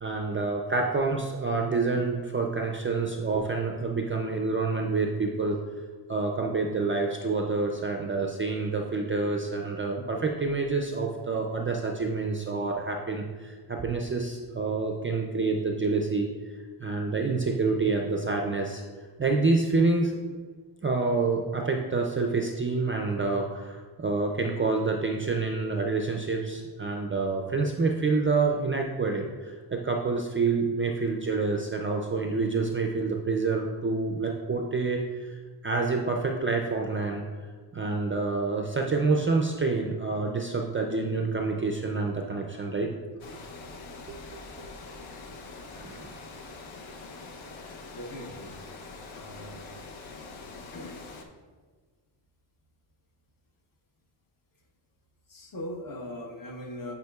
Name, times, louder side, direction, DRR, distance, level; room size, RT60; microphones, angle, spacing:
voice 1, 0.0-5.6 6.1-16.3 16.8-18.8 19.2-20.2 20.8-35.4 35.6-37.2 37.7-42.9 44.1-44.2 45.7-46.2, right 3 dB, 30° right, 2 dB, 0.3 m, -27 dB
Water, 43.2-51.2, left 3 dB, 85° left, 0.8 m, -44 dB
voice 2, 47.9-48.5 49.1-49.7 50.7-51.0 55.3-56.9, left 1 dB, 45° left, 1 dB, 0.9 m, -40 dB
9.3 x 4.9 x 2.3 m, 1.5 s
wide cardioid pair, 170°, 47 cm